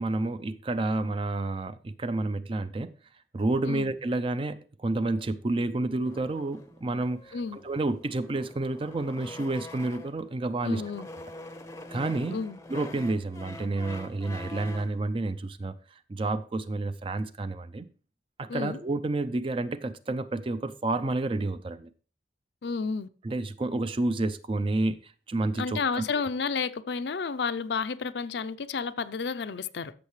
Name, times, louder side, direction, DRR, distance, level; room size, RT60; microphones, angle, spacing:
voice 1, 0.0-2.9 3.3-10.8 11.9-12.4 12.7-15.8 16.1-17.9 18.4-21.9 23.2-26.0, right 2 dB, 30° right, 0.4 m, -30 dB
sound 1, 6.1-10.3 10.7-15.0, left 1 dB, 15° left, 0.6 m, -45 dB
voice 2, 10.6-11.1 12.3-12.6 18.5-18.8 22.6-23.1 25.6-29.9, left 5 dB, 65° left, 0.5 m, -31 dB
13.5 x 6.4 x 3.2 m
head